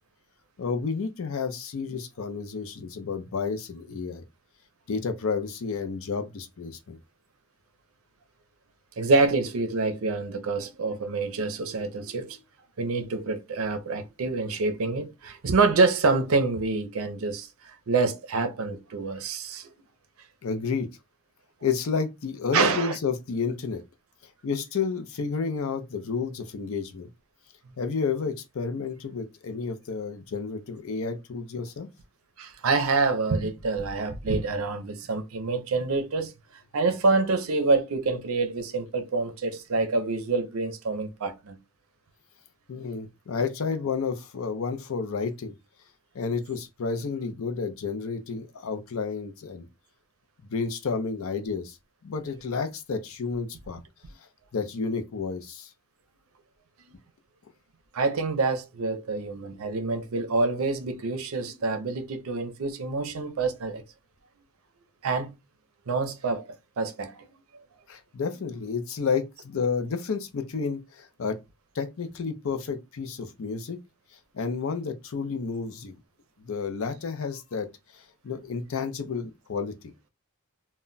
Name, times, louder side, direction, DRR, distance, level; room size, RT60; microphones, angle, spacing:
voice 1, 0.6-4.2 4.9-7.0 20.4-20.9 21.6-23.8 24.4-27.1 27.8-31.9 42.7-45.5 46.1-49.7 50.5-51.8 52.0-53.8 54.5-55.7 67.9-71.4 71.7-73.8 74.3-75.9 76.4-77.7 77.9-79.9, left 5 dB, 65° left, 0.5 m, -31 dB
voice 2, 9.0-12.4 12.8-17.5 17.9-19.7 22.5-23.0 32.4-36.3 36.7-41.6 57.9-63.8 65.0-65.3 65.9-66.5 66.8-67.2, right 3 dB, 70° right, 0.5 m, -26 dB
2.1 x 2.1 x 3.8 m
head